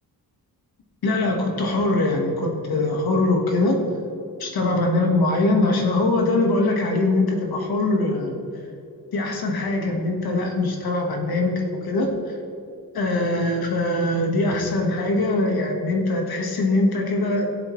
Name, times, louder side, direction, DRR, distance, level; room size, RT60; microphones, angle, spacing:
voice 1, 1.0-3.8 4.4-8.4 9.1-12.3 12.9-17.6, left 2 dB, 65° left, 2 dB, 1.6 m, -22 dB
16.5 x 7.7 x 3.2 m, 2.6 s
wide cardioid pair, 160°, 39 cm